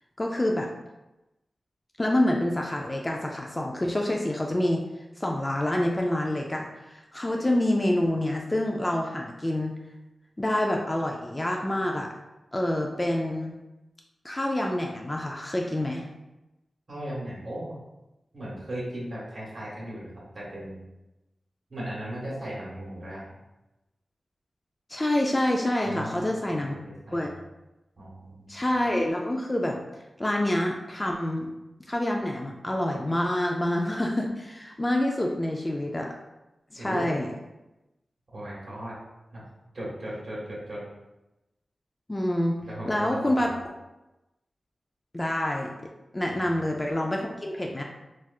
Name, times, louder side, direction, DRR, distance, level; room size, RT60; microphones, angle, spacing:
voice 1, 0.2-0.7 2.0-4.8 5.2-9.7 10.4-12.1 12.5-13.6 14.2-16.0 24.9-26.8 27.1-27.3 28.5-29.8 30.2-31.5 31.9-36.1 36.7-37.3 42.1-42.6 42.9-43.6 45.1-45.7 46.1-47.8, left 1 dB, 20° left, 0 dB, 0.3 m, -27 dB
voice 2, 16.9-17.7 18.3-20.8 21.7-23.2 25.8-26.8 27.1-27.3 28.0-28.6 36.8-37.1 38.3-39.0 39.3-39.4 39.7-40.8 42.6-43.4 46.3-46.4, right 1 dB, 50° right, -8 dB, 1.3 m, -37 dB
4.2 x 2.4 x 2.3 m, 0.99 s
wide cardioid pair, 100°, 0 cm